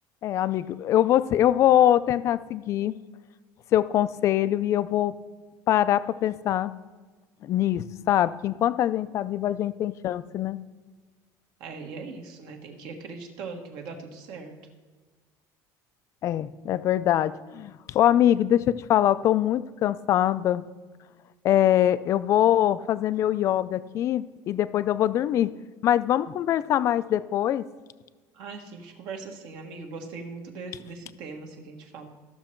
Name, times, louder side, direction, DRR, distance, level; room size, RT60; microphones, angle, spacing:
voice 1, 0.2-3.0 3.7-5.1 5.7-6.7 7.4-10.6 16.2-20.6 21.4-25.5 25.8-27.6, left 11 dB, 35° left, 14 dB, 0.4 m, -23 dB
voice 2, 11.6-14.5 28.3-32.1, right 4 dB, 65° right, 3 dB, 1.4 m, -40 dB
14.0 x 6.3 x 4.5 m, 1.4 s
cardioid pair, 170°, 8 cm